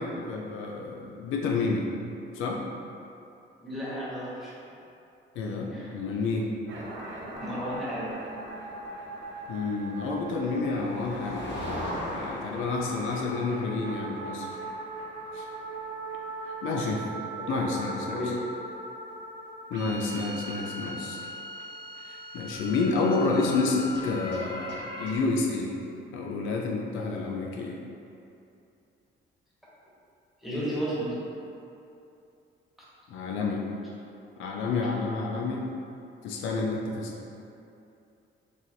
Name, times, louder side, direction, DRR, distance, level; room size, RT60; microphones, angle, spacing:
voice 1, 0.0-1.9 2.3-2.6 5.4-6.5 9.5-11.6 12.1-14.6 15.3-15.5 16.5-17.1 17.5-18.2 19.7-21.2 22.0-25.7 26.1-27.8 33.1-33.6 34.4-35.7 36.2-37.2, left 3 dB, 90° left, -1 dB, 0.4 m, -29 dB
voice 2, 3.6-4.5 5.7-5.9 7.3-8.2 17.4-17.5 18.1-18.3 30.4-31.2, equal, ahead, -9 dB, 1.3 m, -33 dB
sound 1, 6.7-25.2, right 1 dB, 65° right, 0.7 m, -40 dB
Motor vehicle (road), 9.6-17.4, left 1 dB, 65° left, 0.8 m, -40 dB
4.7 x 2.8 x 2.6 m, 2.7 s
cardioid pair, 90°, 20 cm